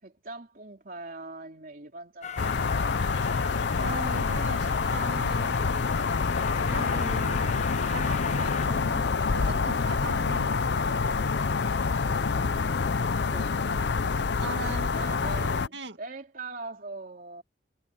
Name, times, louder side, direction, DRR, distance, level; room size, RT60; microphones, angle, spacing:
voice 1, 0.0-2.9 8.9-9.0 12.0-12.8 13.3-14.1 14.9-17.4, right 3 dB, 50° right, 3.2 m, -42 dB
Train, 2.2-8.7, left 5 dB, 40° left, 1.1 m, -39 dB
sound 1, 2.4-15.7, left 4 dB, 70° left, 0.6 m, -27 dB
voice 2, 3.8-5.5 6.1-6.3 6.7-10.6 14.4-14.9 15.7-16.0, right 2 dB, 75° right, 2.3 m, -39 dB
head